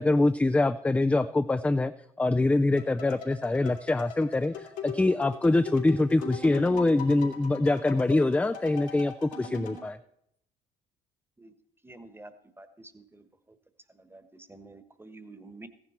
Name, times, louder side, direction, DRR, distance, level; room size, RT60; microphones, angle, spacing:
voice 1, 0.0-1.9 2.2-10.0, left 2 dB, 10° left, 10 dB, 0.4 m, -24 dB
sound 1, 2.8-9.9, left 6 dB, 85° left, 2.6 m, -41 dB
voice 2, 11.8-13.3 13.9-15.7, right 2 dB, 10° right, 11 dB, 1.2 m, -49 dB
14.5 x 9.9 x 4.4 m, 0.75 s
supercardioid pair, 70°, 18 cm